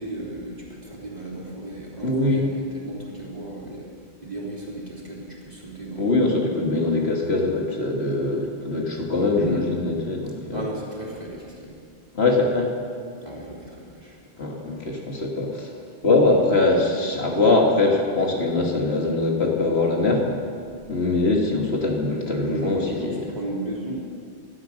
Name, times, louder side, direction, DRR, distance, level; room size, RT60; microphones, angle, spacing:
voice 1, 0.0-3.9 4.2-6.4 9.4-9.7 10.5-11.8 13.2-14.2 22.6-24.0, right 1 dB, 40° right, -4 dB, 3.4 m, -35 dB
voice 2, 2.0-2.4 6.0-10.7 12.1-12.7 14.4-15.7 16.0-20.3 20.9-23.2, left 2 dB, 70° left, 0 dB, 2.3 m, -22 dB
16.5 x 12.5 x 6.6 m, 2.2 s
omnidirectional pair, 1.1 m